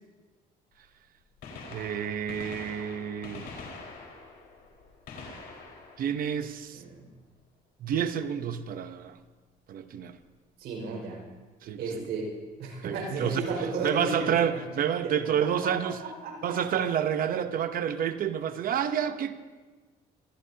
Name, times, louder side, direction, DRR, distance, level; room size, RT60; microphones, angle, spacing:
Gunshot gunfire, 0.7-0.8 1.3-7.1 9.1-9.2 10.2-10.3 11.9-12.0 13.4-13.5 13.7-13.8, left 3 dB, 70° left, 4.8 m, -45 dB
voice 1, 1.7-3.5 6.0-6.8 7.8-9.2 9.7-10.2 11.6-12.0 12.8-13.4 13.8-16.0 16.4-19.3, right 8 dB, 55° right, 10 dB, 0.9 m, -29 dB
voice 2, 6.7-7.1 10.6-11.2 11.8-12.3 12.6-14.6 15.0-15.3 15.6-15.7 16.0-16.8, right 4 dB, 75° right, -1 dB, 5.5 m, -34 dB
24.5 x 16.0 x 2.9 m, 1.3 s
cardioid pair, 110°, 17 cm